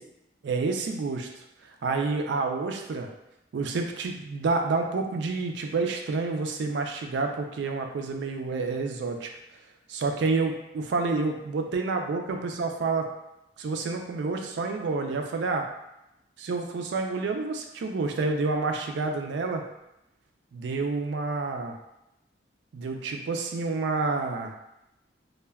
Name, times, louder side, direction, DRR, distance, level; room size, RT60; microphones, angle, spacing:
voice 1, 0.4-1.4 1.8-3.1 3.5-9.3 9.9-13.1 13.6-15.7 16.4-19.7 20.5-21.8 22.7-24.5, right 3 dB, 65° right, 4 dB, 0.3 m, -29 dB
2.2 x 2.1 x 3.3 m, 0.88 s
head